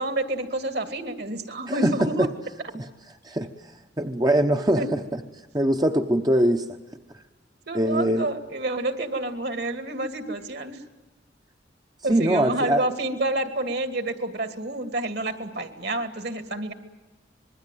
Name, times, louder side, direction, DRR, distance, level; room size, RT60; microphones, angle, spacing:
voice 1, 0.0-2.3 4.8-4.9 7.7-10.8 12.0-16.7, right 2 dB, 60° right, 9 dB, 2.5 m, -29 dB
voice 2, 1.7-2.3 2.7-2.9 3.2-3.5 4.0-5.0 5.5-6.7 7.7-8.3 12.1-12.8, right 1 dB, 20° right, 5 dB, 0.9 m, -22 dB
26.0 x 21.5 x 9.3 m, 1.1 s
head